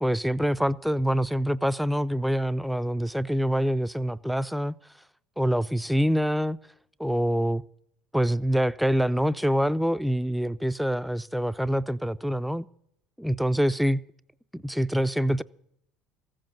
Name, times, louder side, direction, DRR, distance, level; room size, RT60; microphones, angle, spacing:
voice 1, 0.0-4.7 5.4-6.6 7.0-7.6 8.1-12.7 13.2-14.0 14.5-15.4, equal, ahead, 0.4 m, -25 dB
15.0 x 7.8 x 9.1 m
hypercardioid pair, 75°, 0 cm